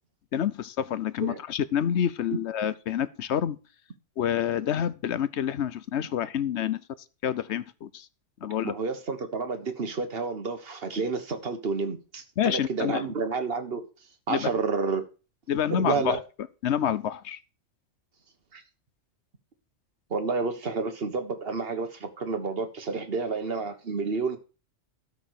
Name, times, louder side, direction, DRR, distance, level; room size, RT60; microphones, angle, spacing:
voice 1, 0.3-3.6 4.2-6.8 7.2-8.1 8.4-8.7 12.4-13.1 14.3-14.5 15.5-16.2 16.6-17.4, left 9 dB, 65° left, 1.0 m, -28 dB
voice 2, 8.6-13.8 14.3-15.0 15.7-16.2 18.5-18.6 20.1-24.4, right 4 dB, 50° right, 1.6 m, -30 dB
12.5 x 5.0 x 6.3 m
omnidirectional pair, 1.3 m